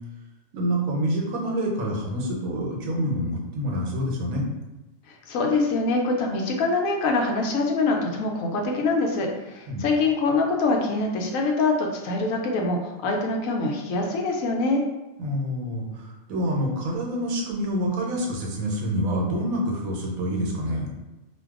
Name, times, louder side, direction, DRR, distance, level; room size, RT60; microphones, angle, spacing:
voice 1, 0.5-4.4 9.7-9.8 15.2-20.9, equal, 90° right, -1 dB, 1.1 m, -27 dB
voice 2, 5.1-14.8, left 3 dB, 80° left, 1 dB, 1.0 m, -24 dB
2.6 x 2.2 x 3.5 m, 1.1 s
omnidirectional pair, 1.4 m